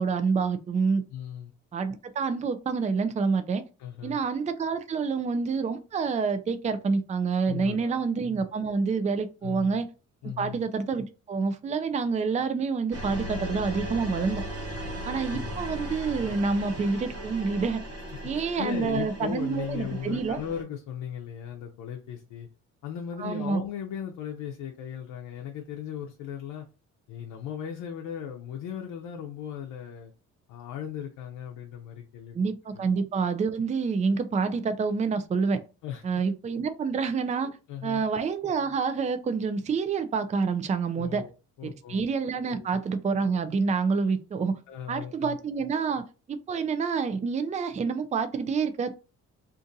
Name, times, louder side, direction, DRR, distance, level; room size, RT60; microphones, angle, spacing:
voice 1, 0.0-1.0 1.7-3.6 4.0-9.9 10.4-14.4 15.1-17.8 18.2-20.4 23.2-23.6 32.3-35.6 36.0-37.5 37.8-41.2 41.6-44.6 44.9-49.0, right 5 dB, 25° right, 0.4 m, -27 dB
voice 2, 1.1-1.5 3.8-4.2 7.5-8.0 9.4-9.8 10.2-10.6 14.7-15.6 18.1-22.5 22.8-26.7 27.1-30.1 30.5-32.4 32.7-32.9 35.8-36.0 37.4-38.0 40.9-41.3 41.6-42.1 42.4-42.8 44.7-45.4, left 9 dB, 90° left, 0.6 m, -37 dB
sound 1, 12.9-20.6, equal, 55° right, 1.2 m, -37 dB
2.6 x 2.5 x 3.8 m
cardioid pair, 90°, 30 cm